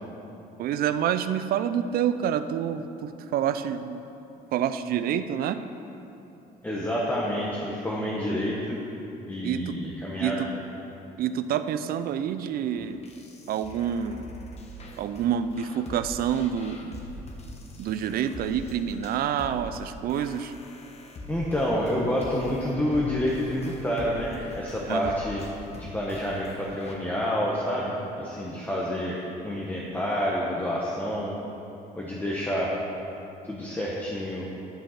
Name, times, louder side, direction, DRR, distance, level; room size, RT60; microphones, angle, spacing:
voice 1, 0.6-4.0 4.5-5.6 9.4-9.8 10.2-10.5 11.2-13.0 13.5-14.2 15.0-17.0 17.8-20.5 24.9-25.1, right 9 dB, 60° right, 11 dB, 0.4 m, -28 dB
voice 2, 6.6-8.8 9.3-10.4 21.3-25.4 25.7-29.2 29.4-31.4 31.9-32.7 33.4-34.5, equal, 10° left, -5 dB, 1.1 m, -28 dB
sound 1, 12.8-26.9, left 1 dB, 40° left, 1.1 m, -43 dB
11.0 x 5.1 x 5.8 m, 3.0 s
cardioid pair, 110°, 17 cm